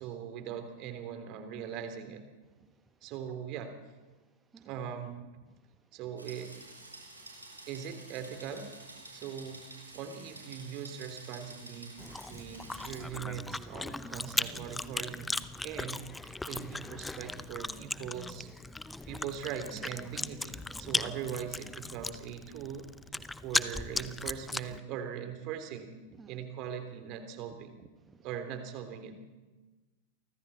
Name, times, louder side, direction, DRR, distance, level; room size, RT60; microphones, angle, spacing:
voice 1, 0.0-2.3 3.0-3.8 4.6-5.2 5.9-6.5 7.7-8.7 9.1-9.7 9.9-12.0 12.3-15.3 15.6-18.5 19.1-22.9 23.4-25.9 26.3-27.8 28.2-29.2, right 8 dB, 40° right, 7 dB, 3.4 m, -40 dB
sound 1, 6.2-13.1, right 2 dB, 80° right, 7.7 m, -50 dB
Chewing mastication, 12.0-24.8, left 2 dB, 5° left, 0.8 m, -37 dB
voice 2, 27.8-28.2, right 5 dB, 15° right, 5 dB, 1.7 m, -56 dB
29.0 x 24.5 x 4.3 m, 1.2 s
figure-of-eight pair, 90°, 0 cm